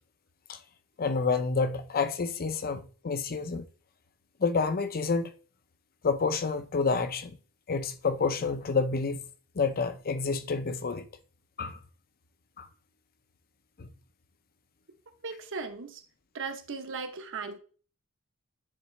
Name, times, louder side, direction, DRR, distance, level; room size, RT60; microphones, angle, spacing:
voice 1, 1.0-3.6 4.4-5.3 6.0-7.4 7.7-9.3 9.6-11.0 11.6-11.8 12.6-12.7 13.8-13.9, left 4 dB, 45° left, 0.6 m, -29 dB
voice 2, 15.2-16.0 16.3-17.6, right 4 dB, 60° right, 0.9 m, -37 dB
9.8 x 3.6 x 3.2 m
head